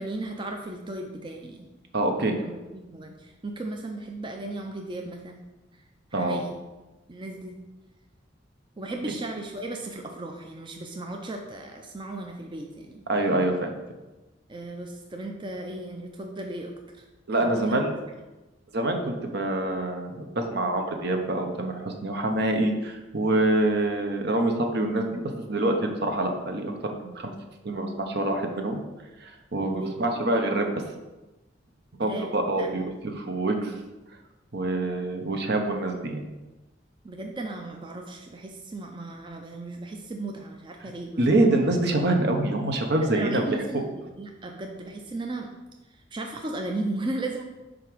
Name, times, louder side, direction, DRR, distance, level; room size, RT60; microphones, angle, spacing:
voice 1, 0.0-1.7 2.2-5.4 5.7-5.8 6.1-6.6 7.1-7.6 8.8-13.0 14.5-17.0 17.4-17.8 29.6-30.0 32.0-32.8 37.0-41.2 43.0-43.9 44.2-45.5 45.9-47.4, right 2 dB, 25° right, 2 dB, 0.6 m, -36 dB
voice 2, 1.9-2.3 6.1-6.4 13.1-13.7 17.3-17.9 18.7-25.2 25.5-27.3 27.6-28.8 29.2-30.7 32.0-33.8 34.5-36.2 40.8-40.9 41.2-43.4, right 2 dB, 60° right, 4 dB, 0.9 m, -26 dB
5.2 x 4.9 x 6.1 m, 1.1 s
head